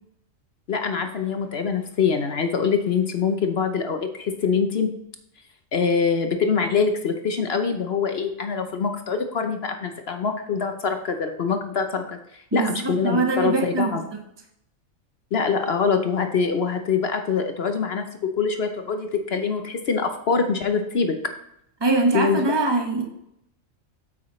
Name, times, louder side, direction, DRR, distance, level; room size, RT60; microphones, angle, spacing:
voice 1, 0.7-4.9 5.7-12.2 12.5-14.0 15.3-18.0 18.4-21.3 22.1-22.4, left 5 dB, 55° left, 6 dB, 1.0 m, -24 dB
voice 2, 12.5-14.2 21.8-23.0, right 3 dB, 20° right, 2 dB, 1.3 m, -23 dB
8.6 x 8.5 x 3.1 m, 0.76 s
omnidirectional pair, 1.3 m